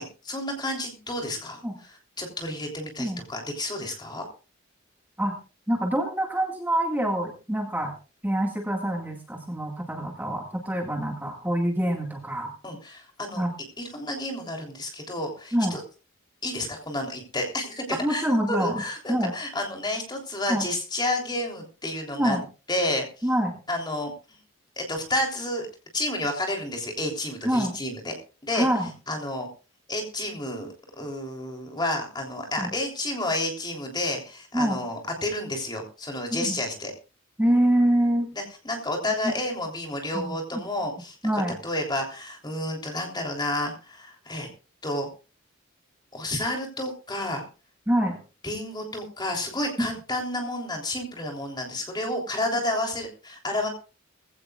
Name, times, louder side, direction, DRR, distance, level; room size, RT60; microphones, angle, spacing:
voice 1, 0.0-1.6 1.9-4.3 12.6-13.5 13.8-15.8 16.4-22.4 22.7-23.2 23.7-24.1 24.8-25.7 25.9-28.1 28.4-28.7 29.1-29.5 29.9-36.9 38.3-44.5 44.8-45.1 46.1-47.4 48.4-53.7, left 1 dB, 20° left, 2 dB, 3.4 m, -30 dB
voice 2, 5.7-7.9 8.2-12.5 13.4-13.5 15.5-15.8 17.9-18.8 19.1-19.3 20.5-20.7 22.1-22.4 23.2-23.6 27.4-27.8 28.5-28.9 32.6-32.7 34.5-34.8 36.3-36.6 37.4-38.3 39.2-39.3 40.1-40.6 41.2-41.6 47.9-48.2 49.8-49.9, right 1 dB, 10° right, 1 dB, 2.0 m, -25 dB
20.0 x 16.0 x 2.4 m, 0.34 s
head